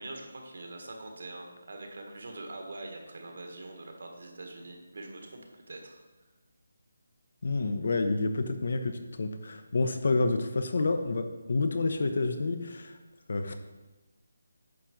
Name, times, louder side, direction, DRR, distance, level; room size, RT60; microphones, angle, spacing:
voice 1, 0.0-6.0, right 2 dB, 55° right, 2 dB, 1.6 m, -43 dB
voice 2, 7.4-13.0 13.3-13.6, left 3 dB, 50° left, 8 dB, 0.8 m, -29 dB
9.5 x 3.9 x 6.0 m, 1.1 s
hypercardioid pair, 175°, 0 cm